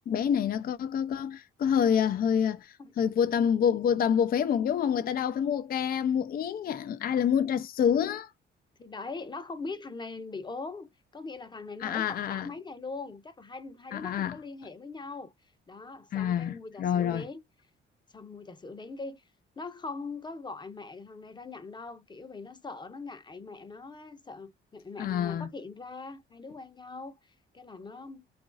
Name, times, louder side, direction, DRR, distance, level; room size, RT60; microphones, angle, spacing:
voice 1, 0.1-8.3 11.8-12.5 13.9-14.4 16.1-17.2 25.0-25.5, left 8 dB, 50° left, 0.5 m, -27 dB
voice 2, 8.8-17.4 18.1-19.2 19.6-28.2, left 3 dB, 20° left, 0.7 m, -41 dB
3.0 x 2.5 x 3.8 m
cardioid pair, 90°, 20 cm